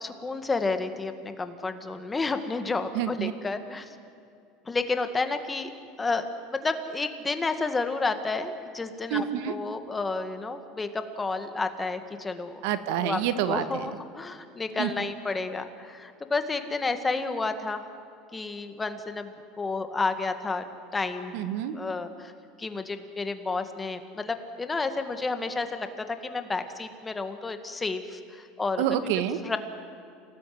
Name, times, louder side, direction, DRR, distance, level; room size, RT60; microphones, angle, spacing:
voice 1, 0.0-3.9 4.7-5.7 6.0-12.6 13.0-13.2 13.5-17.8 18.3-20.6 20.9-21.3 21.7-22.3 22.6-25.9 26.2-28.8 29.4-29.6, left 3 dB, 15° left, 8 dB, 1.8 m, -31 dB
voice 2, 2.9-3.3 9.1-9.5 12.6-13.9 14.8-15.1 21.3-21.8 28.8-29.4, right 10 dB, 75° right, 11 dB, 1.6 m, -28 dB
28.5 x 19.0 x 9.4 m, 2.4 s
supercardioid pair, 135°, 0 cm